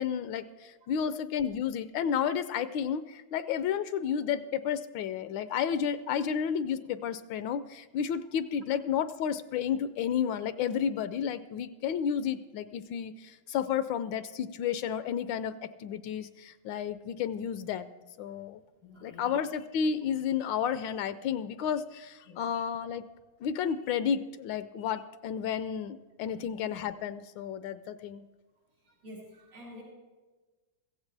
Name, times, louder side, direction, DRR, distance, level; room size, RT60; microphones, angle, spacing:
voice 1, 0.0-17.9 18.2-18.6 19.0-23.0 23.4-28.2, left 8 dB, 80° left, 13 dB, 1.2 m, -32 dB
voice 2, 18.8-19.3 22.2-22.4 26.3-26.5 28.8-29.8, left 1 dB, 90° right, -4 dB, 6.2 m, -49 dB
15.5 x 15.5 x 3.3 m, 1.2 s
omnidirectional pair, 2.1 m